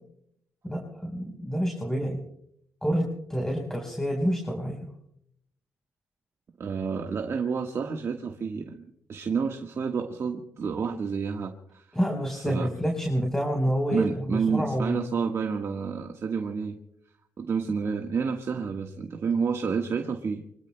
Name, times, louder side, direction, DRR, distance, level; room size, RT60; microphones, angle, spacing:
voice 1, 0.6-2.2 2.8-4.9 11.9-15.0, equal, 10° left, 1 dB, 4.2 m, -28 dB
voice 2, 6.6-11.9 12.4-12.7 13.9-16.8 17.4-20.4, right 5 dB, 55° right, 3 dB, 1.4 m, -29 dB
26.0 x 25.0 x 2.2 m, 0.72 s
supercardioid pair, 55°, 6 cm